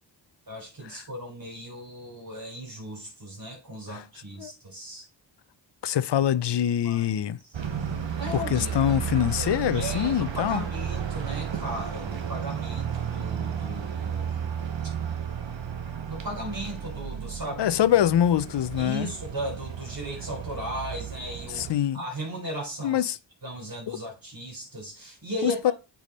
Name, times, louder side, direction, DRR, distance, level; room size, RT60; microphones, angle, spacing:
voice 1, 0.5-5.0 6.8-7.2 7.4-7.6 8.2-9.0 9.4-14.4 16.0-17.8 18.8-21.7 21.9-23.1 23.4-25.7, right 1 dB, 50° right, 3.8 m, -36 dB
voice 2, 5.8-7.4 8.3-10.6 17.6-19.1 21.5-22.0 22.8-23.2 23.9-24.0 25.4-25.7, left 10 dB, 65° left, 0.6 m, -24 dB
sound 1, 7.5-21.7, right 8 dB, 75° right, 1.2 m, -33 dB
8.3 x 3.6 x 4.1 m
cardioid pair, 55°, 45 cm